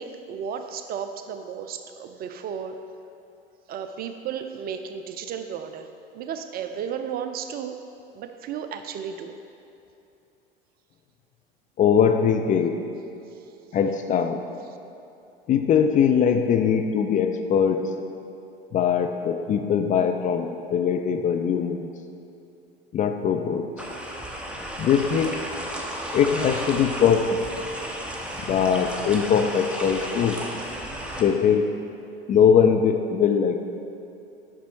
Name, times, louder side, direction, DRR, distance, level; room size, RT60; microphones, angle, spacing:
voice 1, 0.0-2.8 3.7-5.9 6.1-7.8 8.1-9.4, right 7 dB, 30° right, 8 dB, 0.5 m, -34 dB
voice 2, 11.8-12.8 13.7-14.4 15.5-17.8 18.7-21.9 22.9-23.7 24.8-25.4 26.1-27.4 28.5-30.4 31.2-31.7 32.3-33.7, left 7 dB, 25° left, 6 dB, 0.4 m, -21 dB
sound 1, 23.8-31.2, equal, 5° right, 1.0 m, -33 dB
8.2 x 6.1 x 4.5 m, 2.8 s
figure-of-eight pair, 75°, 30 cm